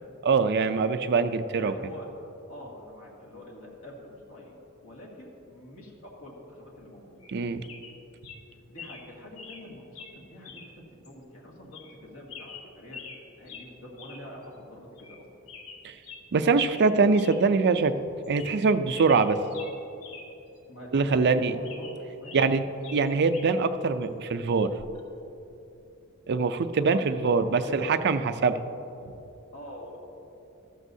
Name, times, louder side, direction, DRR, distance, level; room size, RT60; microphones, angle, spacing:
voice 1, 0.2-1.7 7.3-7.6 15.8-15.9 16.3-17.9 18.3-19.4 20.9-21.5 22.3-22.6 22.9-24.7 26.3-28.5, right 4 dB, 50° right, 9 dB, 0.5 m, -23 dB
voice 2, 1.6-2.1 2.5-4.6 4.8-7.2 8.7-10.6 11.0-13.1 13.4-15.3 20.7-21.9 22.2-22.4 26.8-29.1 29.5-30.0, left 1 dB, 65° left, -2 dB, 2.0 m, -45 dB
sound 1, 7.2-7.4 7.6-8.0 8.2-8.4 8.8-9.1 9.4-9.6 10.0-10.1 10.4-10.7 11.0-11.1 11.7-12.0 12.3-13.2 13.5-13.7 14.0-14.2 14.5-14.6 15.0-15.2 15.5-16.2 16.6-16.9 17.1-17.4 17.8-17.9 18.2-18.6 18.9-20.3 20.6-20.7 21.2-22.5 22.8-23.6 24.8-25.0, left 5 dB, 85° left, 1.3 m, -45 dB
13.5 x 12.5 x 2.7 m, 2.8 s
head